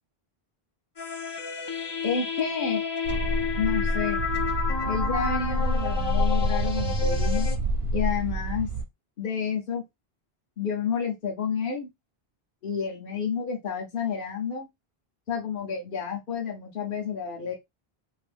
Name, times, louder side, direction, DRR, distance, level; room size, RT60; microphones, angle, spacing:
sound 1, 1.0-7.6, left 6 dB, 35° left, 0.5 m, -31 dB
voice 1, 2.0-2.8 3.6-4.2 4.8-7.5 7.9-8.7 9.2-9.8 10.6-11.9 12.6-14.7 15.3-17.5, left 6 dB, 60° left, -1 dB, 1.0 m, -30 dB
sound 2, 3.0-8.9, equal, 85° right, 0.9 m, -27 dB
2.9 x 2.6 x 3.3 m, 0.19 s
omnidirectional pair, 1.0 m